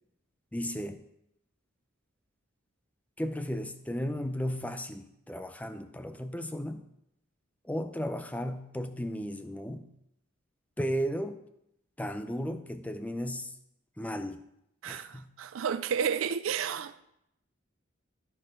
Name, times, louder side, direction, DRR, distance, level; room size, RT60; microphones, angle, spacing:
voice 1, 0.5-1.0 3.2-6.8 7.7-9.9 10.8-11.4 12.0-13.5 14.0-14.4 14.9-15.3, equal, 5° left, 0.5 m, -35 dB
voice 2, 14.8-17.0, right 7 dB, 80° right, 0.4 m, -31 dB
13.5 x 4.7 x 4.9 m
head